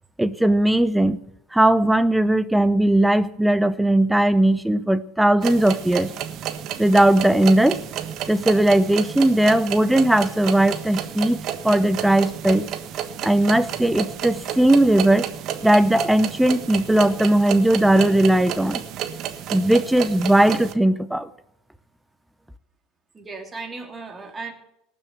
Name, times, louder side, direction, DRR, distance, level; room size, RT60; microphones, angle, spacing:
voice 1, 0.2-1.2 1.5-6.1 6.8-7.8 8.3-11.4 11.6-12.7 13.2-15.2 15.6-18.8 19.5-21.3, right 1 dB, 5° right, 0.9 m, -18 dB
sound 1, 5.4-20.7, right 10 dB, 50° right, 1.4 m, -31 dB
voice 2, 23.1-24.5, right 4 dB, 25° right, 3.3 m, -36 dB
19.0 x 7.2 x 8.4 m
hypercardioid pair, 80°, 0 cm